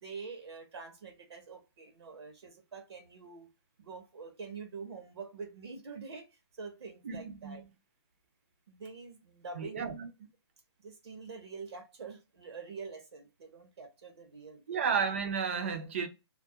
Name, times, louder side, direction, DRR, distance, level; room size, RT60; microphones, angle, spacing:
voice 1, 0.0-3.5 3.8-6.3 6.5-7.6 8.7-9.9 10.8-14.8, right 4 dB, 70° right, 0.7 m, -46 dB
voice 2, 7.0-7.6 9.6-10.1 14.7-16.1, right 6 dB, 25° right, 0.3 m, -32 dB
2.2 x 2.1 x 2.7 m
hypercardioid pair, 170°, 14 cm